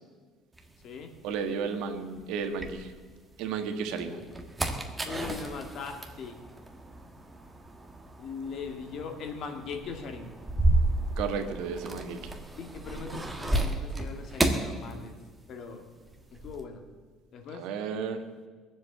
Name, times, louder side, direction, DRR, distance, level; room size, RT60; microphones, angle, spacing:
sound 1, 0.6-3.3 3.8-15.6 15.8-16.6, right 2 dB, 10° right, 1.4 m, -32 dB
voice 1, 1.2-2.9 3.4-4.2 11.2-12.2 17.6-18.2, right 6 dB, 80° right, 6 dB, 1.6 m, -33 dB
voice 2, 5.0-6.4 8.2-10.3 12.5-15.2 15.5-15.9 16.3-16.8 17.3-17.7, left 5 dB, 50° left, 5 dB, 2.0 m, -40 dB
21.0 x 7.6 x 8.1 m, 1.5 s
cardioid pair, 135°, 0 cm